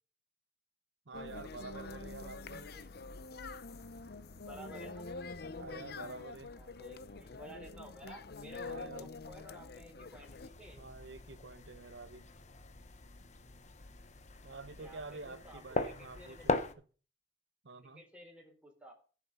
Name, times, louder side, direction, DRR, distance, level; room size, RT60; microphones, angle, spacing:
sound 1, 1.1-10.5, left 3 dB, 60° left, 0.8 m, -46 dB
voice 1, 1.1-2.7 5.6-6.5 8.6-9.1 10.8-12.2 14.4-16.7 17.6-18.0, right 3 dB, 85° right, 0.9 m, -48 dB
voice 2, 2.5-2.8 4.4-5.1 6.5-10.8 14.8-16.5 17.8-18.9, equal, 5° right, 4.1 m, -53 dB
sound 2, 10.2-16.7, left 2 dB, 40° left, 1.1 m, -40 dB
16.5 x 7.1 x 5.5 m
head